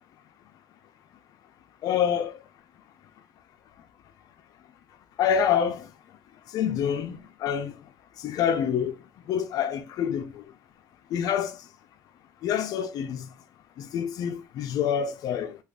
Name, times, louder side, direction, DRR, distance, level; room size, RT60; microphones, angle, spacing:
voice 1, 1.8-2.3 5.2-5.8 6.5-7.8 8.2-8.9 9.3-10.4 11.1-11.5 12.4-13.3 13.8-15.6, left 8 dB, 65° left, 0.5 m, -26 dB
3.2 x 2.3 x 3.6 m
cardioid pair, 105°, 7 cm